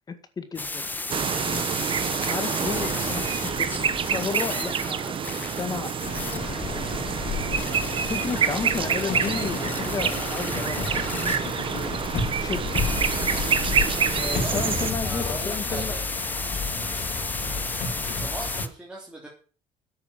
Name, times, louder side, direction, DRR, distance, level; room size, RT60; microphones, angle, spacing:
voice 1, 0.4-0.9 1.3-1.6 2.2-3.7 4.1-5.9 6.2-6.9 8.0-11.3 11.7-11.9 12.4-12.9 14.1-16.0, left 4 dB, 30° left, 9 dB, 1.9 m, -33 dB
sound 1, 0.5-18.7, left 2 dB, 15° left, 1.2 m, -34 dB
sound 2, 1.1-14.9, right 7 dB, 45° right, 1.3 m, -27 dB
sound 3, 2.6-4.1 6.0-18.6, left 4 dB, 65° left, 3.1 m, -32 dB
voice 2, 14.3-16.0 18.2-19.3, right 1 dB, 10° right, -3 dB, 3.4 m, -39 dB
10.5 x 8.7 x 7.6 m, 0.40 s
cardioid pair, 105°, 13 cm